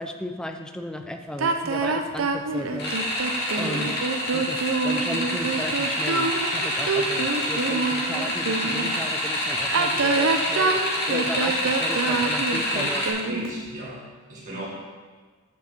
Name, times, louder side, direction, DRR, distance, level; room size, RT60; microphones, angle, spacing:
voice 1, 0.0-2.9 3.6-3.9 4.3-4.6 4.8-10.8 11.1-13.1, left 1 dB, 5° left, 5 dB, 0.4 m, -35 dB
sound 1, 1.4-8.9 9.6-13.6, right 4 dB, 70° right, 0.6 m, -26 dB
sound 2, 2.8-13.1, equal, 55° left, 2.2 m, -27 dB
voice 2, 3.6-3.9 13.2-14.7, right 1 dB, 40° right, -6 dB, 1.5 m, -37 dB
6.3 x 5.3 x 6.8 m, 1.4 s
head